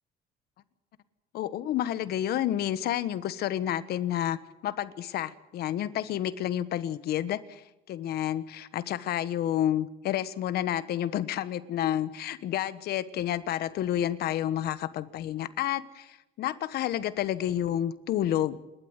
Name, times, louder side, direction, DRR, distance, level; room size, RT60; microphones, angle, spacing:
voice 1, 1.3-7.6 7.9-18.6, left 11 dB, 70° left, 14 dB, 1.3 m, -30 dB
29.0 x 13.0 x 8.2 m, 0.96 s
cardioid pair, 110°, 17 cm